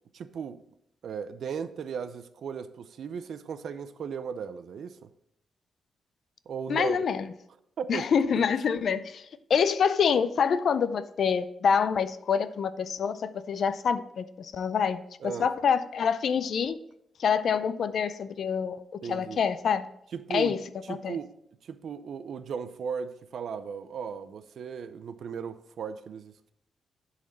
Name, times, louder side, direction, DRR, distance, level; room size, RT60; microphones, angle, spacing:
voice 1, 0.1-0.6 1.0-5.1 6.5-7.0 7.8-8.1 8.3-8.5 15.2-15.5 19.0-19.4 20.1-20.6 20.9-21.4 21.6-26.5, right 6 dB, 65° right, 12 dB, 0.4 m, -36 dB
voice 2, 6.7-7.3 7.9-16.8 17.2-18.8 19.1-19.9 20.3-20.6 20.9-21.2, left 6 dB, 55° left, 13 dB, 0.4 m, -26 dB
10.0 x 4.1 x 4.0 m, 0.76 s
wide cardioid pair, 170°, 0 cm